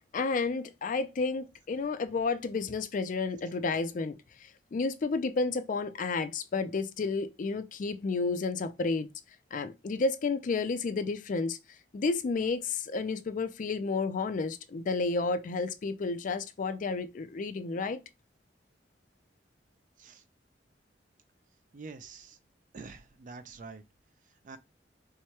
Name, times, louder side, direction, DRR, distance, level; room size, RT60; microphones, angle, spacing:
voice 1, 0.1-4.2 4.7-9.1 9.5-11.6 11.9-18.0, left 4 dB, 45° left, 0.4 m, -31 dB
voice 2, 21.7-22.4 22.7-23.8 24.4-24.6, right 4 dB, 45° right, 0.4 m, -46 dB
4.6 x 2.2 x 2.8 m
head